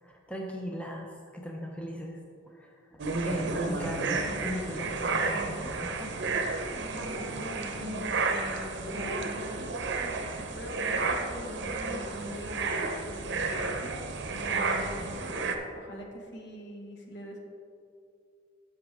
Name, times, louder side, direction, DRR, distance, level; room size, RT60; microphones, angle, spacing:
voice 1, 0.0-2.2 2.5-6.1, equal, 5° left, 0 dB, 0.7 m, -38 dB
sound 1, 3.0-15.6, right 3 dB, 60° right, 0.8 m, -32 dB
voice 2, 3.4-4.2 6.7-14.0 14.4-17.4, equal, 60° left, 1 dB, 1.4 m, -44 dB
10.5 x 7.1 x 3.5 m, 2.4 s
head